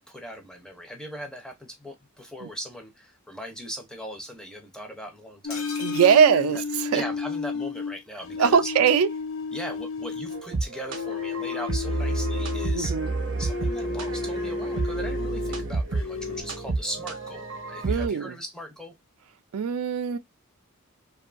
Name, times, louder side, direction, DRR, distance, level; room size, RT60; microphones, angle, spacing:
voice 1, 0.0-5.7 6.3-6.6 6.9-8.7 9.5-13.0 13.4-18.9, equal, 5° left, 0.5 m, -39 dB
sound 1, 5.4-10.5 10.9-12.9 13.4-15.7 16.0-16.4, left 4 dB, 60° left, 0.4 m, -32 dB
sound 2, 5.5-7.5 7.8-7.9 8.1-8.3, left 4 dB, 85° left, 0.8 m, -41 dB
voice 2, 5.8-7.0 8.4-9.1 12.7-13.1 17.8-18.4 19.5-20.2, right 7 dB, 85° right, 0.4 m, -21 dB
sound 3, 10.3-18.1, right 3 dB, 60° right, 0.7 m, -30 dB
2.6 x 2.3 x 2.4 m
head